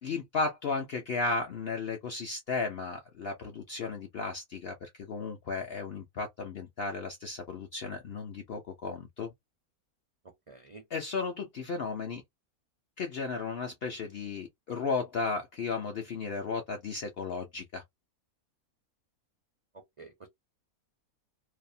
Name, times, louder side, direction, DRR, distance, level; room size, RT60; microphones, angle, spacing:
voice 1, 0.0-9.3 10.9-12.2 13.0-17.8, left 4 dB, 65° left, 0.6 m, -34 dB
voice 2, 10.5-10.8 20.0-20.3, right 4 dB, 60° right, 0.3 m, -49 dB
2.6 x 2.0 x 2.5 m
omnidirectional pair, 1.6 m